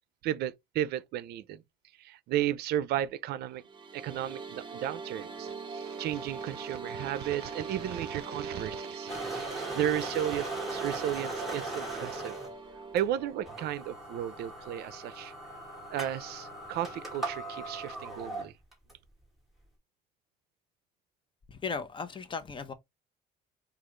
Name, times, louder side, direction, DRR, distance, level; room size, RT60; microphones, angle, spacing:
voice 1, 0.2-1.6 2.0-3.6 3.9-12.4 12.9-15.3 15.9-18.5, right 11 dB, 75° right, 0.5 m, -34 dB
sound 1, 3.5-13.7, right 4 dB, 30° right, 0.7 m, -41 dB
sound 2, 9.1-12.5 13.0-13.1 13.5-18.9, right 2 dB, ahead, 2.0 m, -39 dB
voice 2, 21.5-22.7, left 5 dB, 30° left, 0.8 m, -36 dB
4.9 x 2.4 x 3.0 m
cardioid pair, 110°, 17 cm